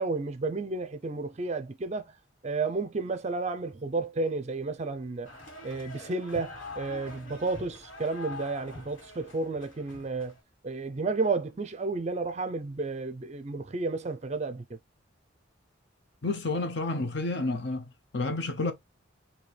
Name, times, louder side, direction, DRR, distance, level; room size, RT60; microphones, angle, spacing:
voice 1, 0.0-2.1 2.4-5.3 5.6-10.3 10.6-14.8, right 3 dB, 35° right, 0.4 m, -32 dB
sound 1, 5.2-10.4, left 2 dB, 70° left, 1.8 m, -44 dB
voice 2, 16.2-17.9 18.1-18.7, left 2 dB, 55° left, 0.7 m, -30 dB
4.3 x 2.7 x 3.2 m
head